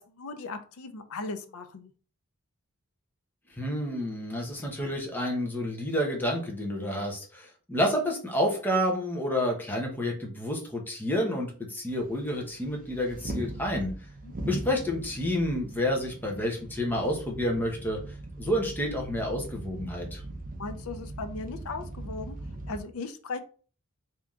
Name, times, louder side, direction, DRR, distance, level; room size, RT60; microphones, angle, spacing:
voice 1, 0.0-1.9 14.2-14.3 20.6-22.4 22.7-23.4, left 3 dB, 70° left, 9 dB, 0.5 m, -37 dB
voice 2, 3.6-13.9 14.4-18.0 18.4-20.2, equal, 10° left, 0 dB, 0.9 m, -29 dB
sound 1, 11.9-22.8, right 2 dB, 40° right, 0.6 m, -40 dB
3.4 x 2.8 x 3.6 m, 0.39 s
head